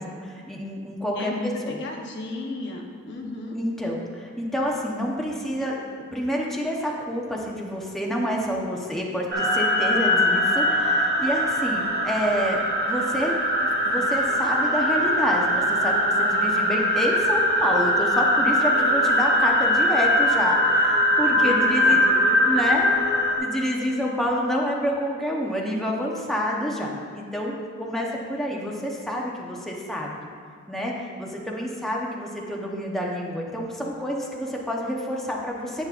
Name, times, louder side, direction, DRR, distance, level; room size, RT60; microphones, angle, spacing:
voice 1, 0.0-1.3 1.6-1.8 3.6-13.4 13.6-22.0 22.5-23.1 23.4-30.1 30.7-35.9, equal, ahead, -3 dB, 0.9 m, -28 dB
voice 2, 1.2-3.6 21.3-22.4, left 2 dB, 60° left, 1 dB, 1.0 m, -34 dB
sound 1, 9.3-23.4, equal, 55° right, 1.3 m, -21 dB
10.5 x 8.4 x 2.5 m, 2.1 s
head